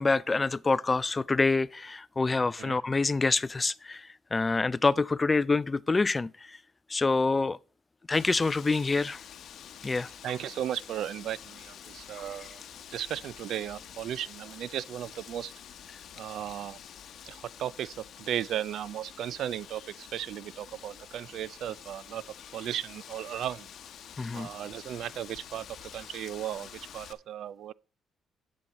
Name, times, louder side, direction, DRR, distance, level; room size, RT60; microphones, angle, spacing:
voice 1, 0.0-6.6 6.9-7.6 8.1-9.2 9.8-10.1 24.2-24.5, left 3 dB, 25° left, 0.3 m, -26 dB
Wind, 8.1-27.1, left 9 dB, 70° left, 0.8 m, -48 dB
voice 2, 10.2-12.6 12.9-15.5 16.2-16.8 17.3-23.7 24.3-25.7 25.9-27.7, right 11 dB, 75° right, 0.3 m, -36 dB
9.4 x 7.5 x 4.1 m
cardioid pair, 90°, 0 cm